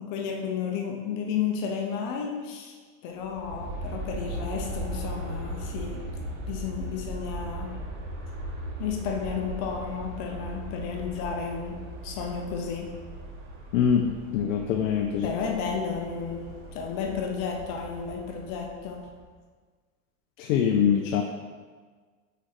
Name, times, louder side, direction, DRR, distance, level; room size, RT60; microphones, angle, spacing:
voice 1, 0.0-2.8 3.0-6.1 6.5-7.8 8.8-13.0 15.2-19.1, left 6 dB, 50° left, 2 dB, 0.9 m, -32 dB
Aircraft, 3.2-19.2, right 1 dB, 70° right, 1.5 m, -38 dB
voice 2, 13.7-15.3 20.4-21.2, left 7 dB, 75° left, 3 dB, 0.7 m, -24 dB
5.1 x 4.6 x 4.3 m, 1.5 s
supercardioid pair, 130°, 39 cm